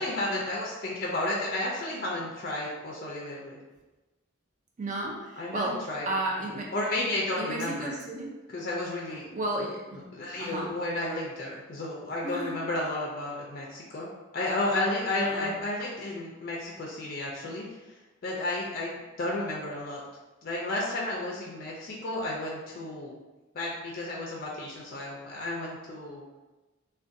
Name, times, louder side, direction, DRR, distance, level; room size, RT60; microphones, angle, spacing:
voice 1, 0.0-3.6 5.4-6.1 6.7-7.9 8.5-9.3 10.1-14.1 14.3-18.0 18.2-20.0 20.4-23.2 23.5-26.2, left 1 dB, 45° left, -3 dB, 0.3 m, -32 dB
voice 2, 4.8-6.7 7.4-8.4 9.3-10.1 10.4-10.8 12.2-12.9 15.2-15.6, right 1 dB, 35° right, -1 dB, 0.4 m, -33 dB
2.5 x 2.2 x 2.5 m, 1.1 s
head